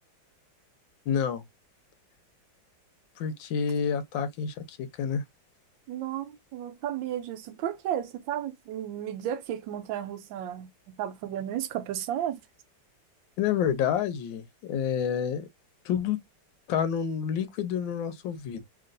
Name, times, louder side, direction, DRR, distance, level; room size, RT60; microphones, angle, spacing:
voice 1, 1.1-1.4 3.2-5.2 13.4-15.5 15.8-16.2 16.7-18.6, left 8 dB, 90° left, 1.5 m, -28 dB
voice 2, 5.9-12.4, right 11 dB, 90° right, 1.3 m, -33 dB
3.0 x 2.9 x 2.5 m
omnidirectional pair, 2.0 m